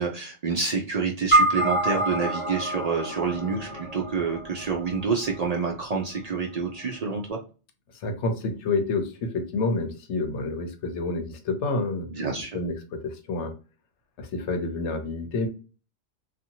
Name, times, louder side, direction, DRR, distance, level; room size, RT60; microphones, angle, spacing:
voice 1, 0.0-7.4 12.1-12.6, right 5 dB, 75° right, 0 dB, 0.3 m, -28 dB
sound 1, 1.3-5.9, right 2 dB, 30° left, 0.7 m, -26 dB
voice 2, 8.0-12.1 12.5-13.5 14.2-15.5, left 3 dB, 65° left, 6 dB, 1.0 m, -28 dB
2.6 x 2.5 x 2.8 m, 0.34 s
omnidirectional pair, 1.4 m